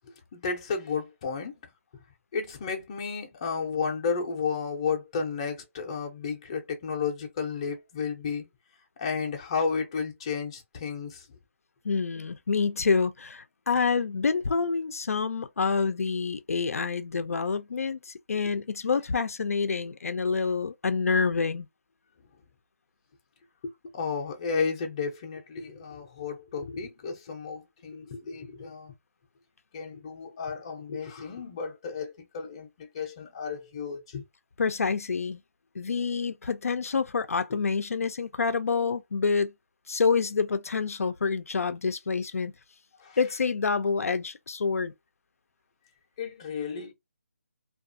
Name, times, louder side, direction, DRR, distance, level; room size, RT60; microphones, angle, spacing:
voice 1, 0.3-1.5 2.3-8.4 9.0-11.2 18.3-18.4 23.6-28.9 29.7-34.2 43.0-43.2 46.2-46.9, left 5 dB, 25° left, 0.5 m, -32 dB
voice 2, 11.8-21.7 34.6-35.4 35.8-39.5 39.9-42.5 43.2-44.9, left 5 dB, 80° left, 0.4 m, -27 dB
2.4 x 2.3 x 2.5 m
hypercardioid pair, 170°, 8 cm